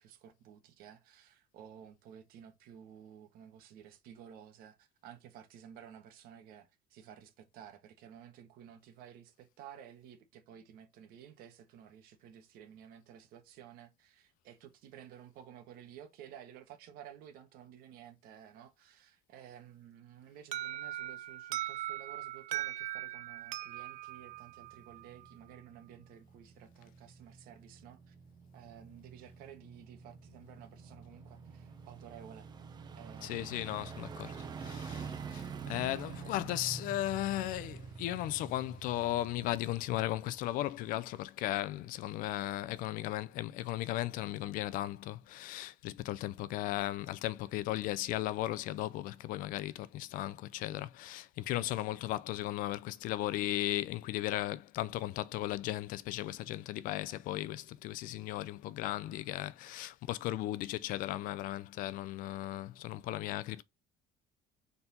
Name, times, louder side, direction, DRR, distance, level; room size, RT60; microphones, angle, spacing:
voice 1, 0.0-28.1 28.5-32.5 32.9-33.9 34.9-35.1 51.6-51.7, right 9 dB, 75° right, 1.4 m, -54 dB
Alarm, 20.5-25.3, right 14 dB, 55° right, 0.4 m, -40 dB
sound 1, 24.3-40.9 41.3-41.4, right 5 dB, 25° right, 0.8 m, -47 dB
voice 2, 33.2-63.6, left 15 dB, 65° left, 0.5 m, -36 dB
4.4 x 4.1 x 5.4 m
cardioid pair, 170°, 16 cm